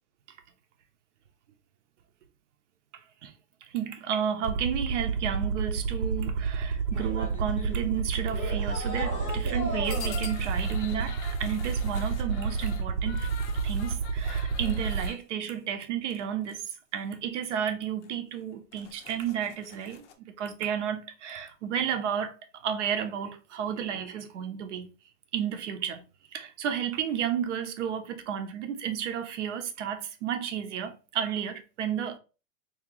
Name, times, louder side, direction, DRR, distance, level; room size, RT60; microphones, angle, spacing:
voice 1, 3.7-13.3 13.6-16.6 16.9-20.1 20.4-22.3 22.6-24.9 25.3-26.0 26.3-32.2, right 9 dB, 50° right, 0.7 m, -32 dB
Aircraft, 4.4-15.1, right 5 dB, 80° right, 0.9 m, -30 dB
sound 1, 6.9-10.5, equal, 10° left, 0.4 m, -37 dB
sound 2, 9.8-15.2 16.1-16.6 16.9-17.1 17.5-17.6 18.0-18.1 18.5-20.1, left 7 dB, 50° left, 0.6 m, -45 dB
3.8 x 2.8 x 2.8 m
supercardioid pair, 160°, 46 cm